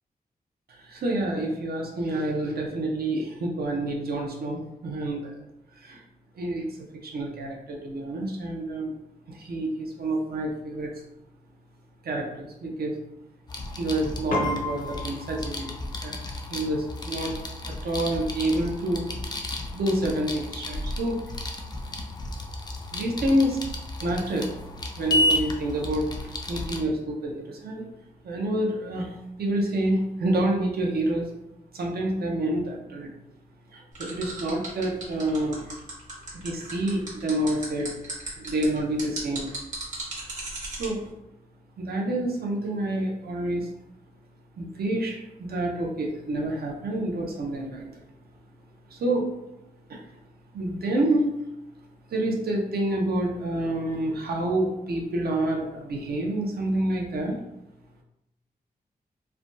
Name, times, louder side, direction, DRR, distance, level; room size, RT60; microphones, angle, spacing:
voice 1, 0.7-5.3 5.8-6.0 6.4-8.9 9.3-10.9 12.0-12.9 13.7-15.7 16.0-16.2 16.5-17.3 17.6-19.1 19.7-21.2 22.9-23.6 24.0-24.6 24.9-27.8 28.2-31.3 31.7-33.1 33.7-35.7 36.3-37.9 38.4-39.5 40.8-41.0 41.8-43.7 44.6-47.9 48.9-49.3 49.9-50.0 50.5-51.4 52.1-57.4, right 1 dB, 80° right, -1 dB, 0.6 m, -28 dB
sound 1, 13.5-26.8, left 1 dB, 25° left, 0.3 m, -32 dB
Piano, 14.3-23.9, left 1 dB, 60° left, 0.7 m, -39 dB
sound 2, 33.9-40.9, right 2 dB, 50° right, 1.0 m, -36 dB
3.2 x 2.2 x 2.6 m, 0.88 s
wide cardioid pair, 150°, 16 cm